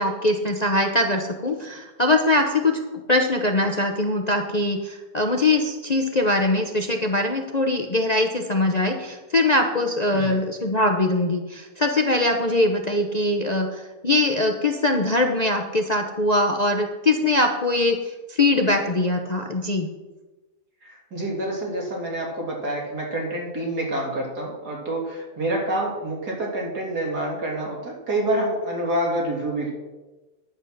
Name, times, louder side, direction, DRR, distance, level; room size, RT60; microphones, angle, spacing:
voice 1, 0.0-2.8 3.1-19.9, left 2 dB, 35° left, 3 dB, 0.7 m, -22 dB
voice 2, 20.8-29.7, right 1 dB, 75° right, -2 dB, 3.5 m, -27 dB
10.0 x 8.0 x 6.5 m, 1.1 s
omnidirectional pair, 1.7 m